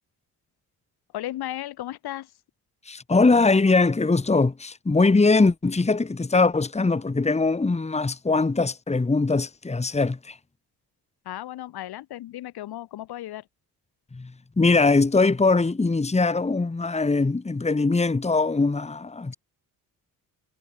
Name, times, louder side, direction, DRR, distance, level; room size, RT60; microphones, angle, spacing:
voice 1, 1.1-2.3 11.2-13.4, left 14 dB, 90° left, 6.5 m, -35 dB
voice 2, 2.9-10.4 14.1-14.3 14.6-19.3, left 3 dB, 15° left, 1.9 m, -21 dB
cardioid pair, 95°, 37 cm